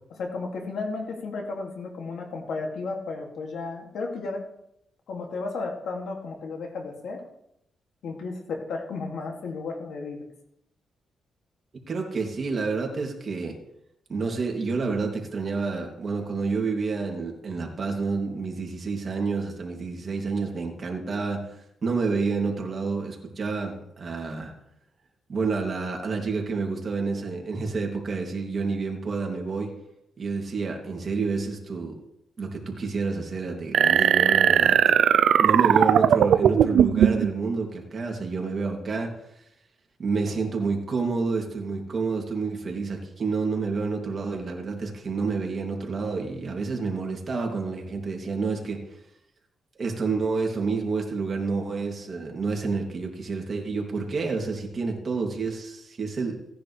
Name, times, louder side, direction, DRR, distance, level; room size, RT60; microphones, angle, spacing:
voice 1, 0.1-4.5 5.1-7.2 8.0-10.2, left 3 dB, 80° left, 2 dB, 2.4 m, -33 dB
voice 2, 11.9-13.6 14.1-21.5 21.8-24.5 25.3-29.7 30.2-32.0 32.4-35.0 35.4-39.1 40.0-48.8 49.8-56.4, right 4 dB, 45° right, 1 dB, 2.6 m, -29 dB
sound 1, 33.7-37.3, right 9 dB, 80° right, 0.5 m, -19 dB
17.0 x 10.0 x 3.3 m, 0.79 s
cardioid pair, 100°, 0 cm